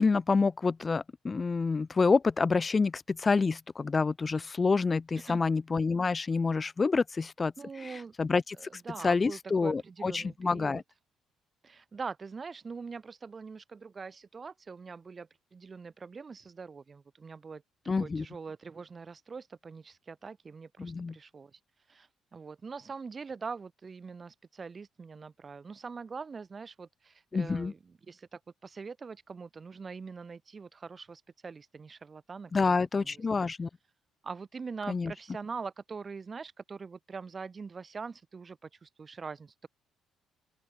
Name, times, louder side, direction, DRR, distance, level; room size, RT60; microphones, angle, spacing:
voice 1, 0.0-7.5 8.2-10.8 17.9-18.2 20.8-21.1 27.3-27.7 32.5-33.7 34.9-35.1, left 4 dB, 30° left, 0.6 m, -28 dB
voice 2, 7.6-8.3 8.6-10.8 11.6-17.6 18.0-21.6 21.9-33.5 34.2-39.7, right 5 dB, 30° right, 3.6 m, -43 dB
open air
cardioid pair, 100°, 0 cm